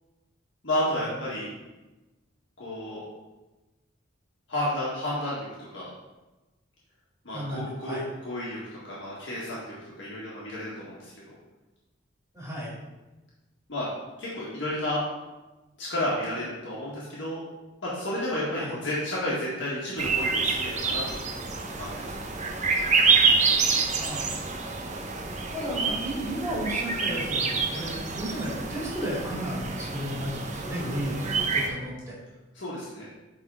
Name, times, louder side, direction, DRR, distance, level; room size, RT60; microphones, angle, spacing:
voice 1, 0.6-1.5 2.6-3.0 4.5-5.9 7.2-8.0 8.2-11.1 13.7-13.9 14.2-15.0 15.8-17.4 17.8-21.0 21.8-22.1 30.6-30.9 32.5-33.1, left 1 dB, 70° left, -7 dB, 1.7 m, -31 dB
voice 2, 7.3-8.1 12.3-12.7 18.6-18.8 24.0-24.3 25.5-32.1, equal, 15° right, -6 dB, 2.2 m, -33 dB
sound 1, 20.0-31.7, right 4 dB, 40° right, 0.7 m, -27 dB
9.0 x 3.7 x 3.7 m, 1.1 s
head